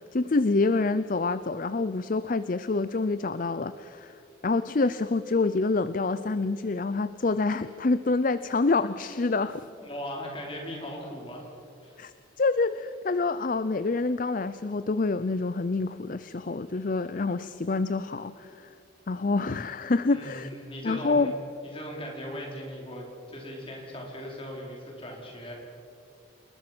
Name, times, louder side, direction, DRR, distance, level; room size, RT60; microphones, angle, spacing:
voice 1, 0.0-4.2 4.4-9.7 12.0-18.7 19.1-20.5 20.8-21.3, left 3 dB, 40° left, 14 dB, 0.5 m, -27 dB
voice 2, 9.8-11.5 11.8-12.0 20.1-21.3 21.6-25.5, equal, 25° left, -1 dB, 4.8 m, -39 dB
29.0 x 20.0 x 6.1 m, 2.5 s
head